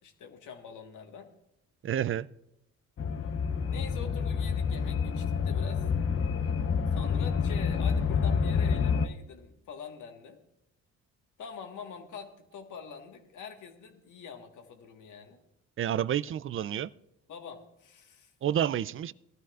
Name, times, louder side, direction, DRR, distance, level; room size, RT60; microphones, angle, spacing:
voice 1, 0.0-1.3 3.7-5.9 6.9-10.4 11.4-15.4 17.3-18.3, left 6 dB, 70° left, 1.6 m, -45 dB
voice 2, 1.8-2.3 15.8-16.9 18.4-19.1, right 10 dB, 40° right, 0.4 m, -29 dB
sound 1, 3.0-9.1, left 6 dB, 45° left, 0.7 m, -28 dB
18.5 x 12.5 x 2.5 m
supercardioid pair, 60°, 32 cm